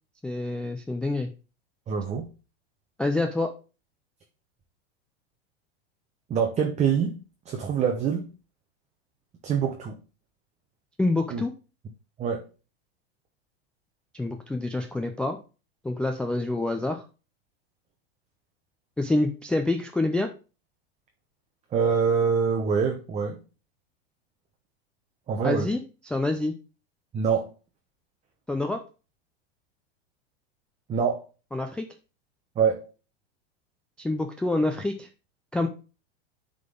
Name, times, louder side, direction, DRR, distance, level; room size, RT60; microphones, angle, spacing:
voice 1, 0.2-1.3 3.0-3.5 11.0-11.5 14.1-15.4 15.8-17.1 19.0-20.3 25.4-25.8 26.1-26.5 28.5-28.8 31.5-31.9 34.0-35.1 35.5-35.7, left 2 dB, 5° left, 3 dB, 0.3 m, -27 dB
voice 2, 1.9-2.3 6.3-7.2 7.5-8.3 9.4-9.9 11.3-11.4 12.2-12.5 21.7-23.4 25.3-25.7 27.1-27.5 30.9-31.2 32.6-32.8, right 6 dB, 20° right, 3 dB, 0.9 m, -25 dB
9.2 x 3.9 x 3.7 m, 0.34 s
supercardioid pair, 125°, 32 cm